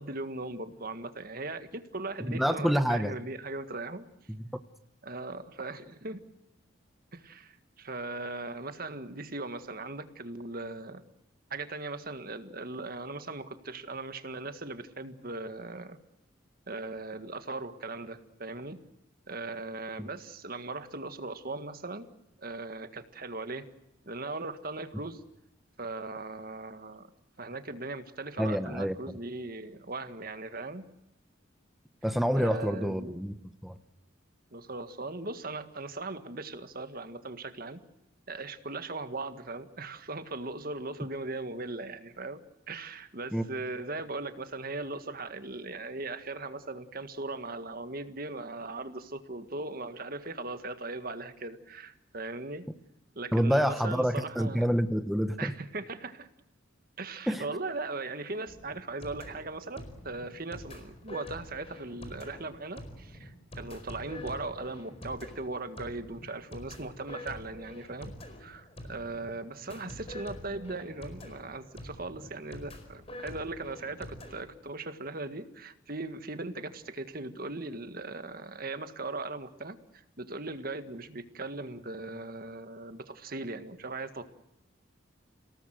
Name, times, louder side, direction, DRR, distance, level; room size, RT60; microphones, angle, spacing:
voice 1, 0.0-4.1 5.0-6.2 7.1-11.0 11.5-16.0 16.7-18.8 19.3-22.1 22.4-23.7 24.1-25.2 25.8-27.1 27.4-30.9 32.3-33.2 34.5-37.8 38.3-42.4 42.7-52.7 53.2-54.7 55.4-56.3 57.0-68.1 68.4-84.2, right 2 dB, 50° right, 9 dB, 1.8 m, -39 dB
voice 2, 2.3-3.1 20.0-20.1 28.4-29.2 32.0-33.4 33.6-33.8 43.3-43.4 53.3-55.5 57.3-57.4, equal, ahead, 8 dB, 0.9 m, -27 dB
sound 1, 58.5-74.4, left 1 dB, 30° left, 4.8 m, -46 dB
29.5 x 18.5 x 7.7 m, 0.87 s
head